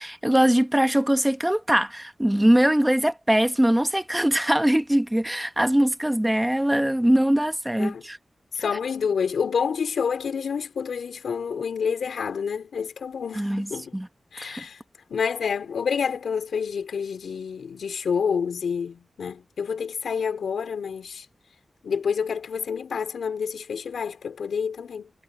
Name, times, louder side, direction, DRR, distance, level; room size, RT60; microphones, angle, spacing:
voice 1, 0.0-8.2 13.3-14.1 14.4-14.6, right 1 dB, 10° right, 1.6 m, -22 dB
voice 2, 8.5-14.0 14.3-14.8 15.1-21.2 21.8-25.1, left 6 dB, 85° left, 3.2 m, -28 dB
cardioid pair, 55°, 0 cm